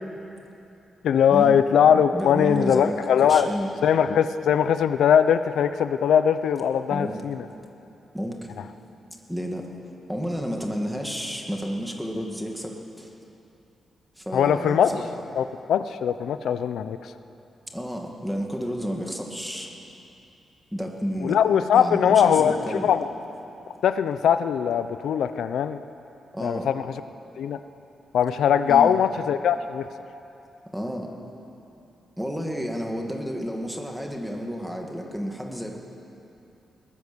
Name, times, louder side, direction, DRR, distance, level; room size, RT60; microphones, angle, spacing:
voice 1, 1.0-3.5 3.8-7.5 14.3-15.0 15.4-17.0 21.2-23.1 23.8-25.8 26.4-26.9 27.4-27.6 28.1-29.9, left 8 dB, 90° left, 11 dB, 0.7 m, -21 dB
voice 2, 2.1-3.7 6.9-7.2 8.1-8.5 9.3-9.7 10.1-13.1 14.2-15.1 17.7-19.7 20.7-21.4 21.7-22.9 26.3-26.7 28.7-28.9 30.7-31.1 32.2-35.8, equal, ahead, 1 dB, 2.1 m, -31 dB
21.5 x 19.5 x 7.0 m, 2.9 s
wide cardioid pair, 155°, 0 cm